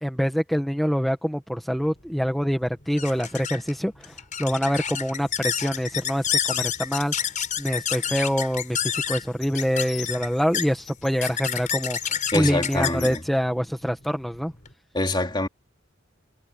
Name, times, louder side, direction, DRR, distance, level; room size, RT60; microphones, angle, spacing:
voice 1, 0.0-7.1 7.6-14.5, equal, ahead, 1.4 m, -25 dB
sound 1, 1.8-14.7, left 8 dB, 40° left, 5.2 m, -30 dB
voice 2, 12.3-13.2 14.9-15.5, left 2 dB, 25° left, 3.1 m, -25 dB
head